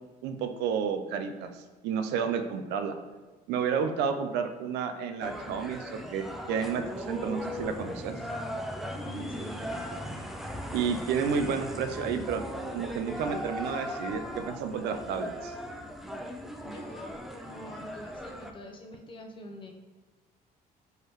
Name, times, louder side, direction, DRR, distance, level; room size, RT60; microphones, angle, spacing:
voice 1, 0.2-2.9 3.5-8.2 10.7-12.4 12.7-15.6, right 6 dB, 85° right, 7 dB, 0.4 m, -31 dB
sound 1, 5.2-18.5, equal, ahead, 0.3 m, -38 dB
voice 2, 9.0-9.8 16.6-19.7, equal, 30° left, 2 dB, 0.6 m, -45 dB
4.5 x 3.2 x 3.1 m, 1.2 s
cardioid pair, 110°, 17 cm